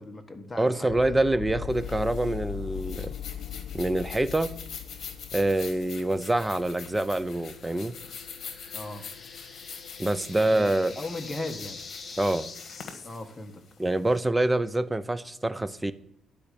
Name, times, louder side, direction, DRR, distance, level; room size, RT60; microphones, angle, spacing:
voice 1, 0.0-1.2 8.7-9.1 10.4-11.8 13.0-13.6, left 2 dB, 20° left, 5 dB, 1.5 m, -38 dB
voice 2, 0.6-3.1 3.7-4.5 5.3-8.0 10.0-10.9 12.2-12.5 13.8-15.9, right 1 dB, 15° right, 15 dB, 0.6 m, -26 dB
sound 1, 0.9-12.8, left 9 dB, 85° left, 0.4 m, -42 dB
sound 2, 1.7-14.1, left 6 dB, 60° left, 1.5 m, -44 dB
sound 3, 7.3-13.2, left 4 dB, 35° left, 1.4 m, -45 dB
11.5 x 5.1 x 8.5 m, 0.74 s
cardioid pair, 90°, 0 cm